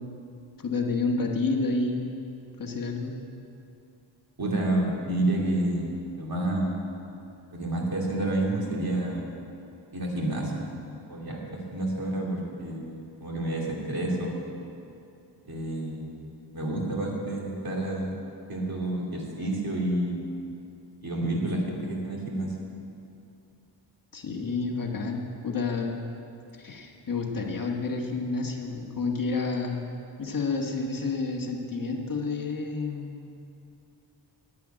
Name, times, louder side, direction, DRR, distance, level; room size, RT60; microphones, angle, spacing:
voice 1, 0.6-2.1 2.6-3.2 24.1-26.0 26.6-29.9 30.2-33.2, left 3 dB, 45° left, 1 dB, 1.4 m, -29 dB
voice 2, 4.4-5.9 6.2-6.8 7.5-9.3 9.9-10.6 11.1-14.4 15.5-16.1 16.5-18.1 18.5-20.2 21.0-22.5, right 1 dB, 50° right, -2 dB, 2.7 m, -29 dB
10.5 x 9.9 x 9.0 m, 2.7 s
wide cardioid pair, 145°, 44 cm